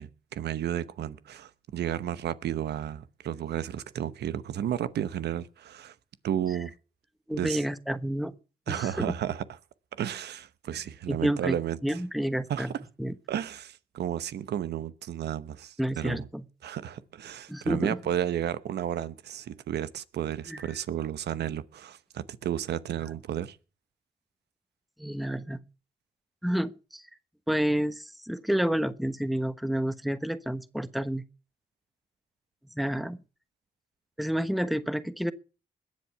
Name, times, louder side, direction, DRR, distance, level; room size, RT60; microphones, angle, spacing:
voice 1, 0.0-5.9 6.2-6.7 7.3-7.6 8.7-9.4 10.0-12.0 12.5-12.7 13.3-16.3 16.6-23.6, right 10 dB, 85° right, 1.0 m, -32 dB
voice 2, 7.3-8.3 8.7-9.1 11.1-12.7 13.0-13.1 15.8-16.4 17.5-18.0 20.5-20.7 25.0-25.6 26.4-27.0 27.5-31.2 32.8-33.2 34.2-35.3, equal, ahead, 1.1 m, -29 dB
21.0 x 7.5 x 5.8 m
cardioid pair, 60°, 17 cm